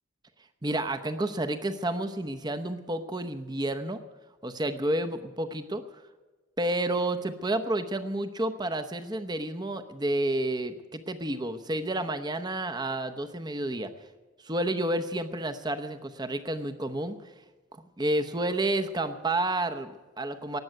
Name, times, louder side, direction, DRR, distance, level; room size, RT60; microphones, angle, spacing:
voice 1, 0.6-4.0 4.4-6.0 6.6-13.9 14.4-17.3 17.7-20.6, right 1 dB, 20° right, 9 dB, 0.8 m, -30 dB
18.5 x 7.8 x 9.2 m, 1.3 s
head